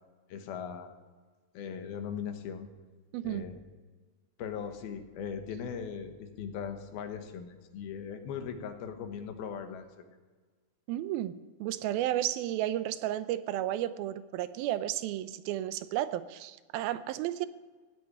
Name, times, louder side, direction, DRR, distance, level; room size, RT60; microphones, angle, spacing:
voice 1, 0.3-0.9 1.5-2.7 3.2-3.6 4.4-10.0, left 7 dB, 85° left, 7 dB, 3.2 m, -39 dB
voice 2, 3.1-3.5 10.9-17.5, right 13 dB, 85° right, 14 dB, 2.5 m, -33 dB
16.5 x 8.4 x 9.9 m, 1.4 s
omnidirectional pair, 4.3 m